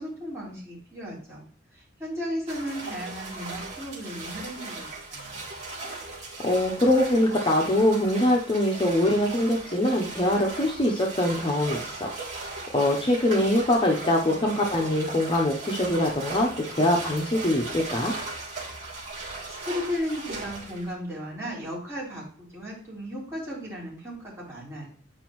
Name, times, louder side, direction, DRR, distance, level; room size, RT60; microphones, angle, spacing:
voice 1, 0.0-1.4 1.7-5.4 19.5-24.9, equal, 15° right, -7 dB, 3.6 m, -35 dB
sound 1, 2.5-20.9, right 3 dB, 40° right, 2.8 m, -38 dB
voice 2, 6.4-12.1 12.3-12.5 12.7-18.1, left 1 dB, 30° left, 0 dB, 0.7 m, -23 dB
8.9 x 5.1 x 3.1 m, 0.44 s
head